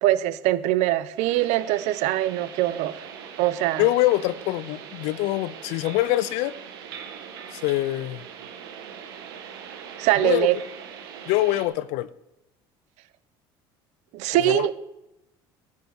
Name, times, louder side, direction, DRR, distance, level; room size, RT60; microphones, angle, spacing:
voice 1, 0.0-3.1 3.4-3.9 10.0-10.6 14.1-14.7, right 15 dB, 70° right, 15 dB, 0.9 m, -22 dB
sound 1, 1.2-11.7, right 8 dB, 85° right, 1.8 m, -41 dB
voice 2, 3.8-6.5 7.5-8.2 10.2-10.5 11.3-12.1 14.4-14.7, left 16 dB, 75° left, 17 dB, 0.5 m, -24 dB
10.5 x 6.6 x 8.1 m, 0.90 s
supercardioid pair, 80°, 12 cm